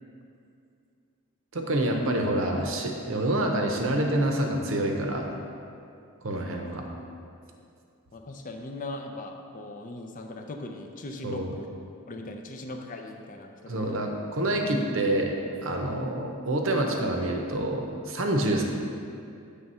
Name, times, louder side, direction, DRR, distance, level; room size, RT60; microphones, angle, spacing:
voice 1, 1.5-5.3 6.2-6.8 11.2-11.5 13.7-18.6, right 1 dB, 60° right, 2 dB, 0.8 m, -27 dB
voice 2, 8.1-11.7 12.1-14.1 15.9-16.1, left 2 dB, 35° left, 3 dB, 0.4 m, -39 dB
7.6 x 3.4 x 5.4 m, 2.5 s
head